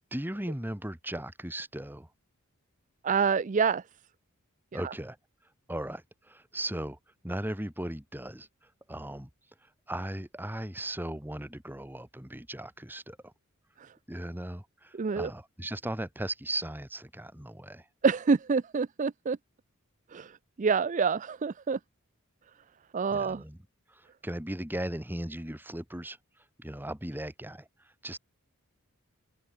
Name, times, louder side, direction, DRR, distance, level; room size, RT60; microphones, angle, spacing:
voice 1, 0.1-2.1 4.7-5.2 5.7-7.0 7.2-8.5 8.9-9.3 9.9-13.3 14.1-17.9 23.1-23.6 23.9-26.2 26.6-27.7 28.0-28.2, right 1 dB, 10° right, 2.1 m, -37 dB
voice 2, 3.0-3.8 4.7-4.9 13.8-13.9 14.9-15.3 18.0-19.4 20.1-21.8 22.9-23.4, right 5 dB, 35° right, 0.4 m, -27 dB
open air
head